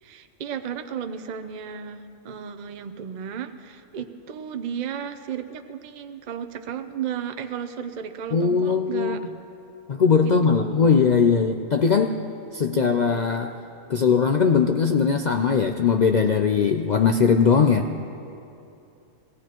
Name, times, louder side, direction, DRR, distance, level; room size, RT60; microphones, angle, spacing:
voice 1, 0.0-9.3 10.2-10.9 12.7-12.9, right 8 dB, 45° right, 8 dB, 0.6 m, -34 dB
voice 2, 8.3-9.2 9.9-12.2 12.5-13.6 13.9-17.9, left 5 dB, 80° left, 6 dB, 0.4 m, -20 dB
23.0 x 19.0 x 3.0 m, 2.8 s
omnidirectional pair, 1.4 m